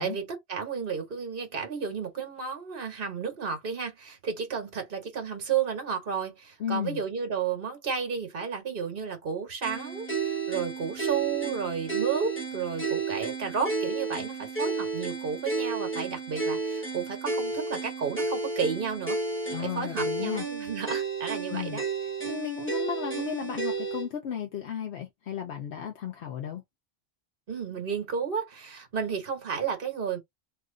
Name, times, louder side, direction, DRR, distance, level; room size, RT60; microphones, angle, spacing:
voice 1, 0.0-19.2 19.6-21.8 27.5-30.2, right 6 dB, 60° right, 1.4 m, -32 dB
voice 2, 6.6-7.0 19.5-20.4 21.5-21.8 22.2-26.6, left 9 dB, 90° left, 1.1 m, -34 dB
sound 1, 9.6-24.1, right 4 dB, 10° left, 1.2 m, -32 dB
2.9 x 2.6 x 3.7 m
omnidirectional pair, 1.1 m